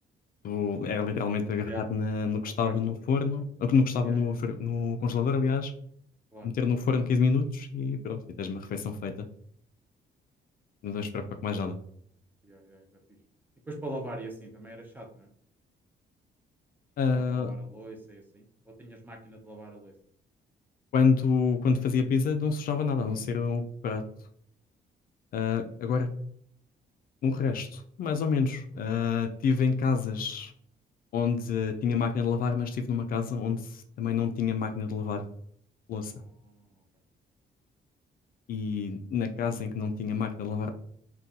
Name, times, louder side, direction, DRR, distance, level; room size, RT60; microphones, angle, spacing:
voice 1, 0.4-5.7 6.4-9.1 10.8-11.8 17.0-17.5 20.9-24.0 25.3-26.1 27.2-30.5 31.1-35.2 35.9-36.1 38.5-40.7, left 5 dB, 55° left, 6 dB, 0.4 m, -28 dB
voice 2, 2.6-3.0 4.0-4.4 6.3-6.5 12.4-12.8 13.7-15.3 17.1-19.9 28.8-28.9 36.0-36.8, right 1 dB, 10° right, 2 dB, 0.5 m, -43 dB
3.8 x 2.2 x 2.7 m, 0.63 s
cardioid pair, 165°, 18 cm